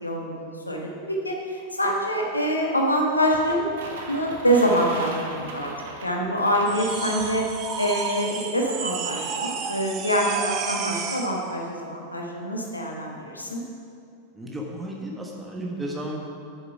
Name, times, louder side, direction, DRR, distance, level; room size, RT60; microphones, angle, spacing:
voice 1, 0.0-3.7 4.1-5.7 6.0-7.5 7.8-13.6, equal, 80° left, 0 dB, 1.4 m, -25 dB
sound 1, 3.3-7.4, right 3 dB, 60° right, 1.4 m, -39 dB
sound 2, 6.7-11.4, right 6 dB, 35° right, 0.9 m, -32 dB
voice 2, 14.3-16.2, right 1 dB, 10° right, -1 dB, 1.3 m, -33 dB
9.5 x 6.7 x 5.8 m, 2.5 s
figure-of-eight pair, 90°, 0 cm